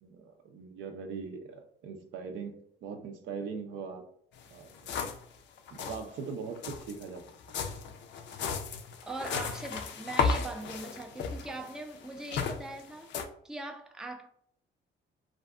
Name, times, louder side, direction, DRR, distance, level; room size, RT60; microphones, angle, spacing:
voice 1, 0.0-4.0 4.5-5.0 5.7-7.2, right 5 dB, 75° right, 0.5 m, -41 dB
sound 1, 4.4-4.5 4.7-5.3 5.6-6.0 6.6-13.2, left 5 dB, 65° left, 0.4 m, -34 dB
voice 2, 9.0-13.1 13.4-14.3, right 2 dB, 5° right, 0.3 m, -41 dB
2.6 x 2.4 x 2.2 m
cardioid pair, 90°, 20 cm